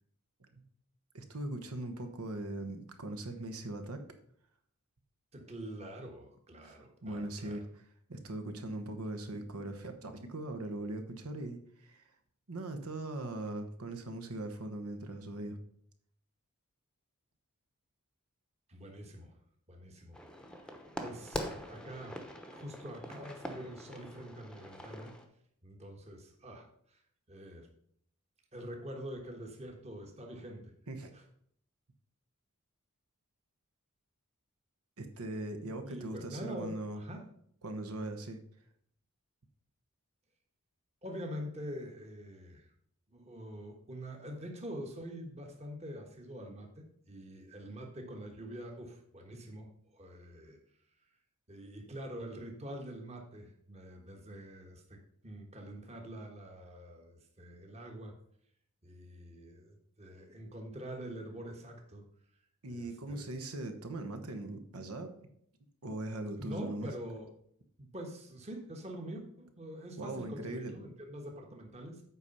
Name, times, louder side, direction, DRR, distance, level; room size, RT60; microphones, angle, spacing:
voice 1, 1.1-4.0 6.6-7.7 8.1-12.0 12.5-15.6 30.9-31.1 35.0-37.0 37.6-38.4 62.6-65.1 65.8-66.9 70.0-70.7, right 1 dB, 80° right, 7 dB, 1.1 m, -40 dB
voice 2, 5.3-7.6 18.7-19.4 19.7-20.2 20.6-22.2 22.5-25.1 25.6-27.0 27.3-27.7 28.5-30.7 31.1-31.2 35.8-37.2 41.0-42.6 43.1-50.6 51.5-58.2 58.8-62.1 62.7-63.3 66.4-67.3 67.8-72.0, equal, 30° right, 2 dB, 1.3 m, -45 dB
sound 1, 20.1-25.2, equal, 5° left, 0.8 m, -43 dB
8.2 x 4.9 x 5.4 m, 0.68 s
head